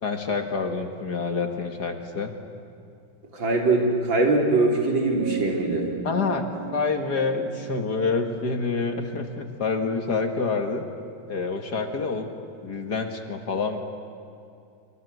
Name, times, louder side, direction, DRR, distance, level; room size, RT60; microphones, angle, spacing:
voice 1, 0.0-2.3 6.0-6.5 6.7-10.9 11.3-12.3 12.6-13.8, left 4 dB, 50° left, 6 dB, 2.2 m, -27 dB
voice 2, 3.3-5.9, right 2 dB, 65° right, 1 dB, 4.1 m, -22 dB
sound 1, 5.1-10.0, right 7 dB, 45° right, 2.1 m, -37 dB
26.0 x 25.0 x 8.1 m, 2.5 s
omnidirectional pair, 2.3 m